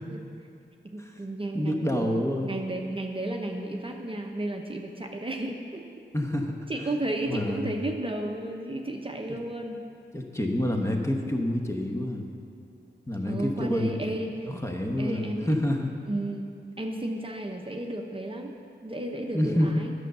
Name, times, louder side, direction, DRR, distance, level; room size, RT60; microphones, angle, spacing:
voice 1, 0.8-5.8 6.7-9.8 13.2-14.5 15.0-15.5 16.1-18.5 18.8-19.9, right 1 dB, 30° right, 2 dB, 0.7 m, -33 dB
voice 2, 1.5-2.6 6.1-6.6 7.2-7.7 10.1-12.2 13.1-14.0 14.4-15.9 19.3-19.8, left 1 dB, 15° left, 2 dB, 1.0 m, -28 dB
9.3 x 6.3 x 6.7 m, 2.5 s
wide cardioid pair, 80°, 19 cm